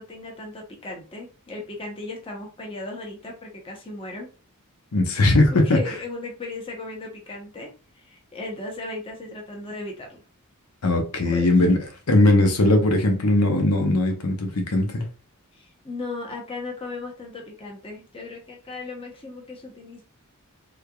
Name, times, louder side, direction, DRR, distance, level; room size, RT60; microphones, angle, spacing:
voice 1, 0.0-4.3 5.5-7.7 8.0-10.2 11.2-11.8 15.5-20.0, left 2 dB, 25° left, 0.7 m, -36 dB
voice 2, 4.9-5.8 10.8-11.8 12.1-15.1, left 2 dB, 85° left, 0.8 m, -19 dB
3.5 x 3.2 x 2.3 m
head